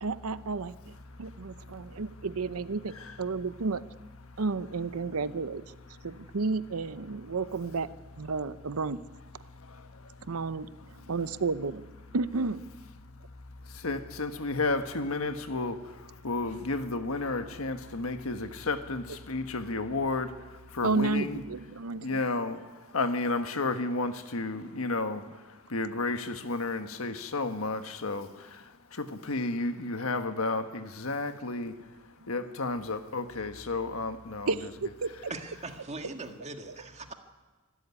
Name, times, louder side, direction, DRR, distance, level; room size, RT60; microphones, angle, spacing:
voice 1, 0.0-0.9 1.2-3.8 4.4-5.7 6.0-7.9 8.2-9.0 10.3-10.7 11.1-11.8 12.1-12.6 20.8-22.2 34.5-35.3 36.7-36.8, right 4 dB, 80° right, 15 dB, 0.7 m, -32 dB
voice 2, 13.8-15.8 16.2-20.3 20.8-21.4 22.0-22.6 22.9-25.2 25.7-28.3 29.0-31.7 32.3-34.7, left 3 dB, 75° left, 8 dB, 1.5 m, -31 dB
voice 3, 35.3-37.1, right 3 dB, 30° right, 5 dB, 1.8 m, -40 dB
25.0 x 13.0 x 9.8 m, 1.3 s
head